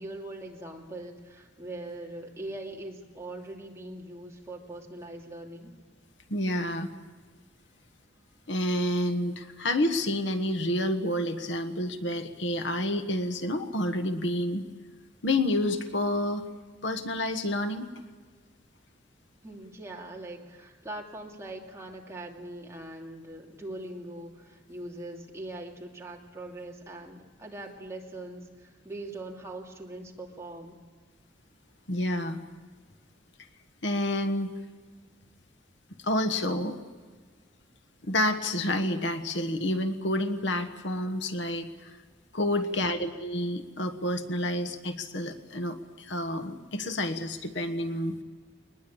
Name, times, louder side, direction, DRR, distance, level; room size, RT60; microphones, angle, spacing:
voice 1, 0.0-5.7 19.4-30.8 42.5-43.0, right 1 dB, 15° right, -1 dB, 2.6 m, -41 dB
voice 2, 6.3-6.9 8.5-14.6 15.2-16.5 16.8-17.9 31.9-32.4 33.8-34.5 36.0-36.8 38.0-42.0 42.3-48.1, left 1 dB, 70° left, 8 dB, 1.4 m, -29 dB
22.0 x 20.0 x 8.7 m, 1.5 s
head